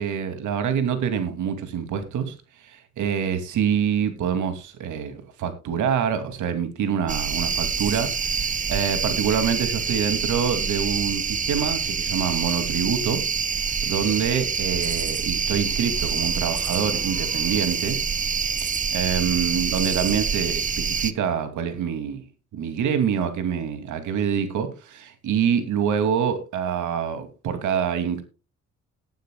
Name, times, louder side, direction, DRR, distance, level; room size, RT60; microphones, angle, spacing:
voice 1, 0.0-2.4 2.7-13.2 13.8-18.0 18.6-22.2 22.5-28.2, right 7 dB, 80° right, 2.6 m, -26 dB
sound 1, 7.1-21.1, right 6 dB, 25° right, 0.7 m, -26 dB
19.0 x 9.3 x 2.3 m
cardioid pair, 90°, 30 cm